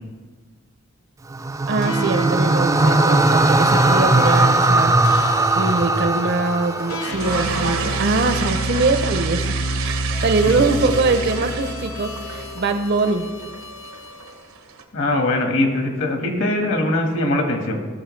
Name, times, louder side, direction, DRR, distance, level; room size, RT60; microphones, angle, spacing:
sound 1, 1.3-7.6, right 2 dB, 15° right, 0.4 m, -18 dB
voice 1, 1.7-5.0 5.5-9.5 9.8-13.3, right 3 dB, 55° right, 9 dB, 0.6 m, -22 dB
sound 2, 1.8-14.3, equal, 90° left, 1.4 m, -29 dB
Flushing toilet, 6.8-14.8, right 5 dB, 80° right, 1.0 m, -30 dB
voice 2, 14.9-17.9, left 1 dB, 65° left, 2 dB, 1.6 m, -22 dB
16.0 x 6.4 x 3.2 m, 1.4 s
head